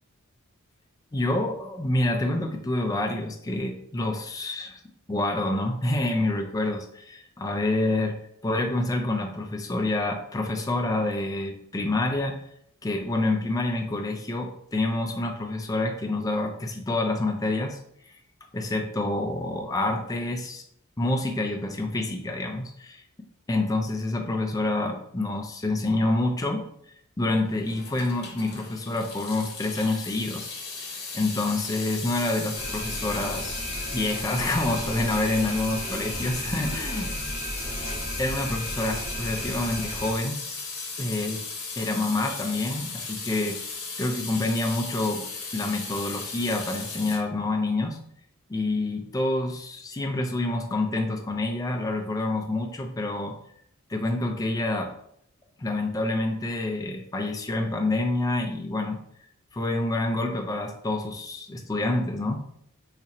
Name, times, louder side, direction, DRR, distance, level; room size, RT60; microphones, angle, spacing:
voice 1, 1.1-4.8 5.1-8.2 8.4-12.4 12.8-17.8 18.5-20.6 21.0-23.0 23.5-26.7 27.2-30.5 31.1-33.6 33.9-37.1 38.2-40.4 41.0-41.4 41.8-43.6 44.0-45.3 45.5-48.0 48.5-53.3 53.9-54.9 55.6-59.0 59.5-62.5, left 2 dB, 15° left, 3 dB, 0.3 m, -27 dB
Water tap faucet / Sink (filling or washing) / Drip, 27.6-47.2, left 4 dB, 50° left, 0.8 m, -36 dB
sound 1, 32.6-40.1, equal, 25° right, 0.8 m, -35 dB
2.7 x 2.4 x 4.1 m, 0.70 s
head